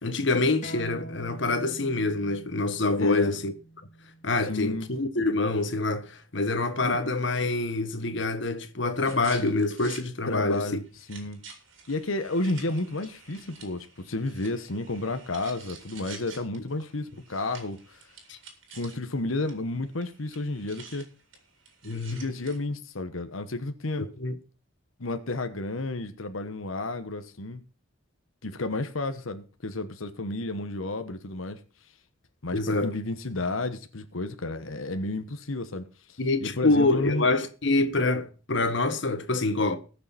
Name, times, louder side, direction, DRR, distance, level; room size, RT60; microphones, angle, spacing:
voice 1, 0.0-3.5 4.2-10.7 18.3-18.4 21.8-22.2 24.0-24.3 32.5-32.9 36.2-39.8, left 2 dB, 60° left, 1.5 m, -26 dB
sound 1, 0.6-5.8, right 1 dB, 40° left, 3.1 m, -45 dB
voice 2, 3.0-3.3 4.4-4.9 6.8-7.0 10.3-10.8 11.1-11.4 11.9-18.1 18.7-21.1 22.1-24.0 25.0-27.6 28.4-31.6 32.4-37.3, left 2 dB, 85° left, 1.2 m, -32 dB
sound 2, 9.0-10.0 10.4-10.5 10.9-19.2 19.5-19.6 19.8-22.6, right 5 dB, 70° right, 3.9 m, -49 dB
20.5 x 6.9 x 4.2 m
head